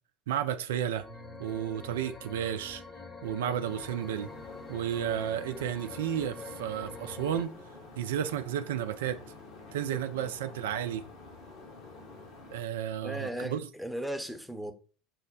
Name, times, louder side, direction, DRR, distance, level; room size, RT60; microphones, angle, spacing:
voice 1, 0.3-1.0 1.4-2.8 3.2-4.3 4.7-7.5 8.0-9.2 9.7-11.0 12.5-13.6, right 9 dB, 75° right, 0.4 m, -32 dB
sound 1, 0.9-7.4, left 3 dB, 25° left, 0.9 m, -45 dB
sound 2, 3.6-12.6, left 3 dB, 60° left, 1.2 m, -49 dB
voice 2, 13.0-14.7, equal, ahead, 0.8 m, -37 dB
6.2 x 2.1 x 4.0 m
hypercardioid pair, 75°, 0 cm